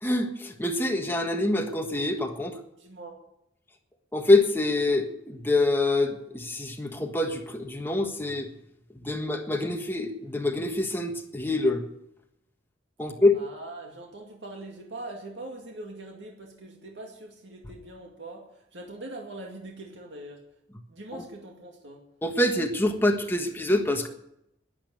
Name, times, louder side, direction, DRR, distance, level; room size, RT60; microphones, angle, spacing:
voice 1, 0.0-2.6 4.1-8.5 8.9-11.8 13.0-13.4 21.1-21.2 22.2-24.1, left 2 dB, 10° left, 4 dB, 1.4 m, -25 dB
voice 2, 2.8-3.2 13.3-20.4 20.9-22.0, right 2 dB, 70° right, 0 dB, 2.2 m, -42 dB
11.5 x 10.5 x 9.3 m, 0.82 s
head